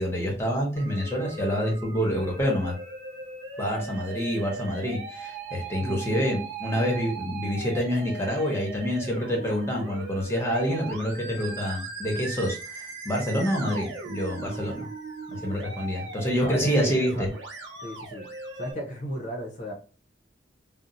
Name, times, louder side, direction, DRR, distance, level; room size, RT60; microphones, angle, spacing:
voice 1, 0.0-2.7 3.6-14.9 15.3-17.3, equal, 15° left, -1 dB, 0.9 m, -27 dB
Musical instrument, 0.8-18.7, right 4 dB, 75° right, 0.8 m, -39 dB
voice 2, 5.8-6.2 16.4-17.3 17.8-18.3 18.5-19.7, equal, 40° left, 2 dB, 0.6 m, -34 dB
2.6 x 2.0 x 3.8 m, 0.37 s
head